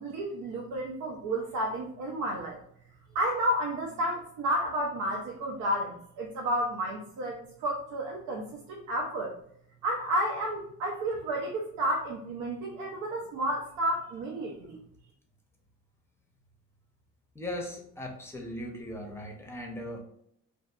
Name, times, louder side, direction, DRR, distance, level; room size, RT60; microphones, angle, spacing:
voice 1, 0.0-2.6 3.1-9.4 9.8-14.8, right 1 dB, 80° right, -1 dB, 0.5 m, -31 dB
voice 2, 17.3-20.0, left 1 dB, 10° left, 1 dB, 0.6 m, -38 dB
2.6 x 2.3 x 2.3 m, 0.69 s
cardioid pair, 90°, 30 cm